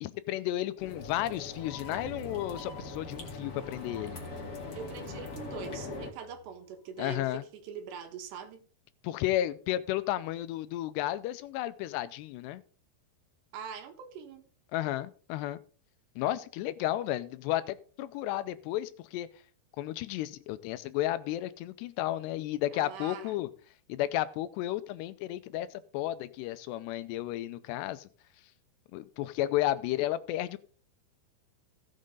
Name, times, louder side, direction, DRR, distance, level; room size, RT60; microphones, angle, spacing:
voice 1, 0.0-4.2 7.0-7.4 9.0-12.6 14.7-15.6 16.2-19.3 19.8-23.5 23.9-28.1 28.9-30.6, left 14 dB, 90° left, 13 dB, 2.9 m, -33 dB
sound 1, 0.8-6.1, left 3 dB, 35° left, 1.7 m, -42 dB
sound 2, 1.6-6.8, left 1 dB, 65° left, 2.0 m, -50 dB
voice 2, 4.7-8.6 13.5-14.4 22.7-23.3, right 7 dB, 90° right, 6 dB, 3.6 m, -43 dB
17.0 x 6.5 x 3.8 m, 0.42 s
omnidirectional pair, 4.8 m